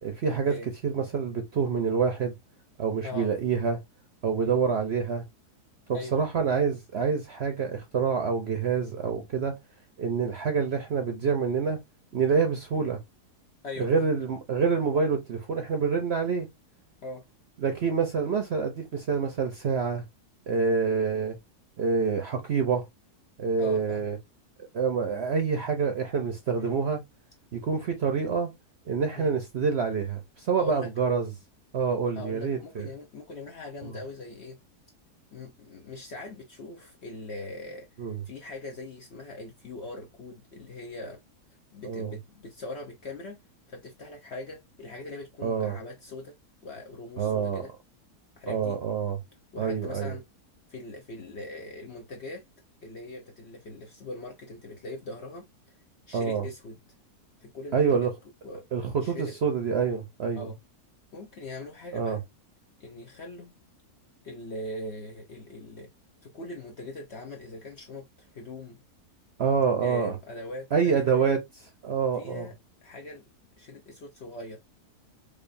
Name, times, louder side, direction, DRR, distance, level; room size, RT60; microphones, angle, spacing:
voice 1, 0.0-0.5 0.8-2.3 2.8-3.8 4.2-5.2 5.9-9.6 10.0-11.8 12.1-13.0 13.8-16.5 17.6-20.0 20.5-21.4 21.8-22.8 23.4-24.2 24.7-27.0 27.5-28.5 28.9-31.3 31.7-32.9 38.0-38.2 41.8-42.1 45.4-45.8 47.2-47.7 48.5-49.2 49.6-50.2 56.1-56.5 57.7-58.1 58.7-60.5 61.9-62.2 69.4-70.1 70.7-71.4 71.8-72.5, right 5 dB, 55° right, 0.8 m, -27 dB
voice 2, 5.9-6.2 13.6-14.1 17.0-17.2 23.6-24.1 26.5-26.8 29.1-29.3 30.6-30.9 32.1-34.6 35.3-37.9 38.3-41.2 41.7-43.4 43.7-46.3 46.6-47.7 48.4-48.8 49.5-50.2 50.7-52.4 52.8-55.5 56.1-56.8 57.4-58.1 58.4-58.6 59.0-59.4 60.3-60.6 61.1-62.2 62.8-63.5 64.2-65.9 66.2-68.8 69.8-71.4 72.1-72.5 72.8-73.2 73.6-74.6, left 2 dB, 55° left, 0.9 m, -41 dB
4.9 x 2.5 x 2.5 m
omnidirectional pair, 1.7 m